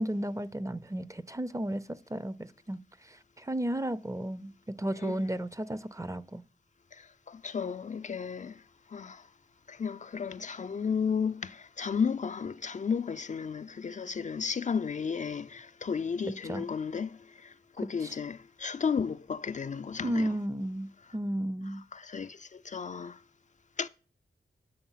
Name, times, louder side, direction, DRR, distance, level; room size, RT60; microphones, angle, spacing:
voice 1, 0.0-2.8 3.1-4.5 4.8-6.4 16.5-16.6 18.0-18.1 20.0-21.8, right 1 dB, 20° right, 0.6 m, -33 dB
voice 2, 4.9-5.2 6.9-8.6 8.9-9.3 9.7-20.4 21.9-23.2 23.8-23.9, left 6 dB, 45° left, 0.4 m, -34 dB
9.2 x 6.5 x 5.6 m
cardioid pair, 60°, 17 cm